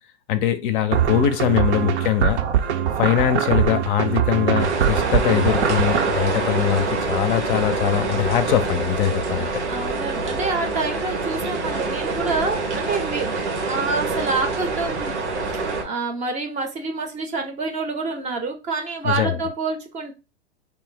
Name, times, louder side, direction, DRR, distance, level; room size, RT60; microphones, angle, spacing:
voice 1, 0.3-2.4 3.0-9.5 19.0-19.4, left 10 dB, 50° left, 0.5 m, -22 dB
sound 1, 0.9-6.1, right 9 dB, 70° right, 0.6 m, -22 dB
sound 2, 4.6-15.8, right 3 dB, 90° right, 0.9 m, -26 dB
voice 2, 9.4-13.3 13.6-15.2 15.8-20.1, right 3 dB, 20° right, 0.5 m, -27 dB
2.6 x 2.0 x 3.7 m
hypercardioid pair, 110°, 34 cm